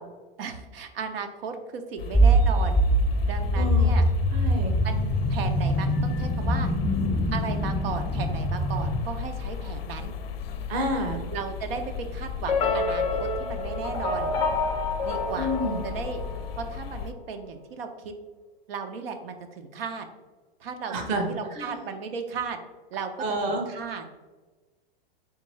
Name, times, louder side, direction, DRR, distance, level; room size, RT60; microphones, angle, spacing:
voice 1, 0.4-2.8 3.2-4.0 4.8-6.7 7.3-10.1 11.3-14.3 15.0-15.6 15.8-16.2 16.6-18.1 18.7-20.1 20.6-22.6 22.9-23.1 23.5-24.1, right 5 dB, 90° right, 6 dB, 0.6 m, -35 dB
sound 1, 2.0-17.1, left 6 dB, 90° left, 0.5 m, -36 dB
sound 2, 2.1-9.0, right 1 dB, ahead, 0.8 m, -23 dB
voice 2, 3.6-4.0 4.3-4.7 10.7-11.2 15.4-15.8 20.9-21.3 21.6-21.7 23.2-23.6, right 1 dB, 30° right, 3 dB, 0.7 m, -29 dB
sound 3, 12.5-16.8, left 3 dB, 20° left, 0.4 m, -28 dB
3.6 x 3.6 x 3.0 m, 1.3 s
supercardioid pair, 150°, 29 cm